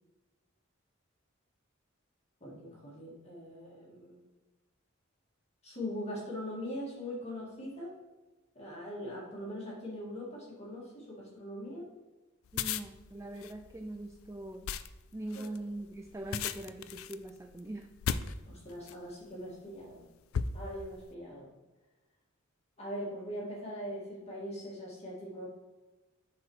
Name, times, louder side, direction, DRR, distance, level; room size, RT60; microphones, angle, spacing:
voice 1, 2.4-4.2 5.6-7.9 8.6-11.9 15.3-15.5 18.5-20.1 20.5-21.5 22.8-25.5, equal, 30° left, -5 dB, 1.9 m, -41 dB
sound 1, 12.4-19.1 19.7-19.9 20.3-21.0, left 7 dB, 85° left, 0.4 m, -37 dB
voice 2, 12.5-14.7 15.1-17.9, right 1 dB, 15° right, 5 dB, 0.3 m, -42 dB
7.6 x 4.9 x 3.1 m, 1.1 s
head